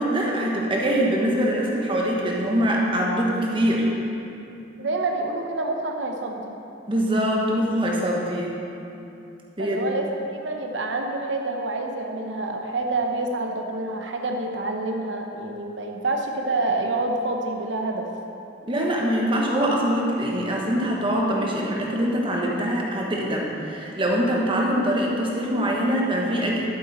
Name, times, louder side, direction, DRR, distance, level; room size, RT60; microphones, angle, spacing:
voice 1, 0.0-3.9 6.9-8.5 9.6-9.8 18.6-26.6, equal, 30° right, -2 dB, 1.4 m, -23 dB
voice 2, 4.8-6.6 9.6-18.1, right 2 dB, 75° right, 2 dB, 0.8 m, -27 dB
12.0 x 7.7 x 4.3 m, 2.8 s
head